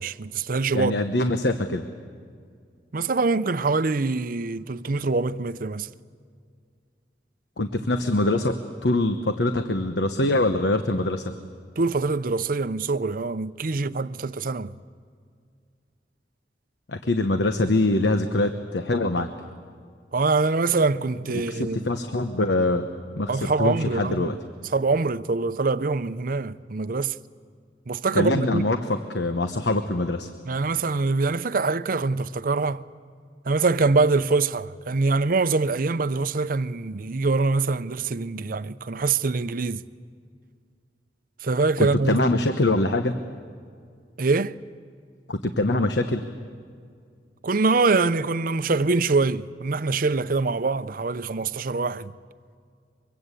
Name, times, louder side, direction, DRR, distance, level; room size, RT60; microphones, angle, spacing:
voice 1, 0.0-0.9 2.9-5.9 11.8-14.7 20.1-21.8 23.3-24.3 24.7-27.2 27.9-28.6 30.5-32.9 33.5-39.8 41.4-42.2 44.2-44.6 47.4-52.1, right 3 dB, 55° right, 0.6 m, -24 dB
voice 2, 0.7-1.8 7.6-11.2 16.9-19.3 21.3-22.9 23.2-24.3 28.1-30.3 41.8-43.2 45.3-46.2, left 2 dB, 80° left, 1.1 m, -24 dB
24.0 x 23.5 x 8.3 m
head